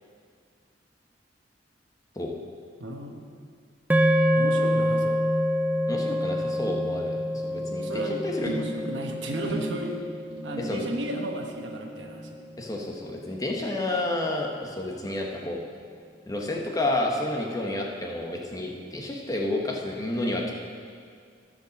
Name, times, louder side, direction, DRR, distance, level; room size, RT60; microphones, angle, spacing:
voice 1, 2.8-3.3 4.3-5.2 7.8-10.0 10.4-12.4, right 1 dB, 75° right, 2 dB, 1.2 m, -34 dB
sound 1, 3.9-12.3, equal, 10° right, 0.4 m, -27 dB
voice 2, 5.9-8.5 10.6-10.8 12.6-15.6 16.3-20.5, left 1 dB, 20° left, 0 dB, 1.1 m, -30 dB
sound 2, 8.5-15.0 15.3-15.7 16.1-16.2, right 2 dB, 35° right, 1.4 m, -39 dB
13.5 x 5.3 x 6.5 m, 2.1 s
head